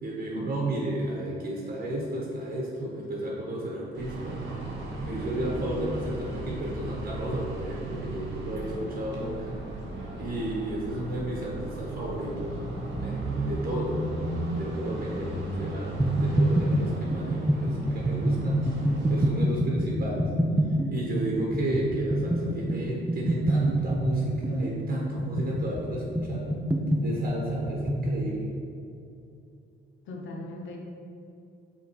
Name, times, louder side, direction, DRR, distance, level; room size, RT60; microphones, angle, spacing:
voice 1, 0.0-4.4 5.0-9.6 10.2-12.6 12.9-14.0 14.5-18.7 19.1-20.3 20.7-26.5 27.0-28.5, right 1 dB, 55° right, -4 dB, 1.3 m, -32 dB
sound 1, 3.9-19.3, right 1 dB, 75° right, 1.4 m, -35 dB
sound 2, 16.0-28.3, right 1 dB, 10° right, 0.6 m, -27 dB
voice 2, 30.1-30.8, left 2 dB, 75° left, 0 dB, 1.0 m, -38 dB
5.8 x 3.9 x 4.6 m, 2.5 s
cardioid pair, 90°, 20 cm